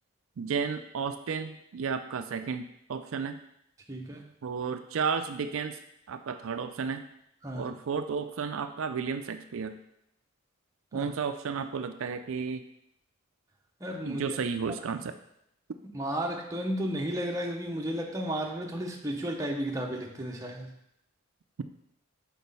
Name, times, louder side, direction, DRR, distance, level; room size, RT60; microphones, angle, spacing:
voice 1, 0.4-2.6 2.9-3.4 4.4-5.8 6.1-7.0 7.5-9.8 10.9-12.7 14.1-15.1, right 5 dB, 70° right, 8 dB, 0.4 m, -32 dB
voice 2, 3.9-4.2 7.4-7.7 10.9-11.1 13.8-14.4 14.7-14.8 15.9-20.7, equal, 15° right, 0 dB, 0.8 m, -33 dB
6.1 x 4.2 x 5.4 m, 0.77 s
head